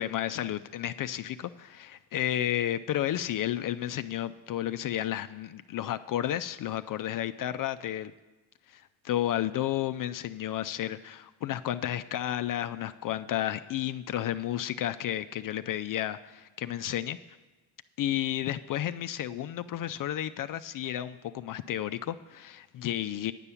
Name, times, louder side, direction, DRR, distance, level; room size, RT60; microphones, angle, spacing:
voice 1, 0.0-8.1 8.7-17.2 18.0-23.3, left 12 dB, 45° left, 11 dB, 0.4 m, -32 dB
9.9 x 5.5 x 8.3 m, 1.2 s
supercardioid pair, 65°, 47 cm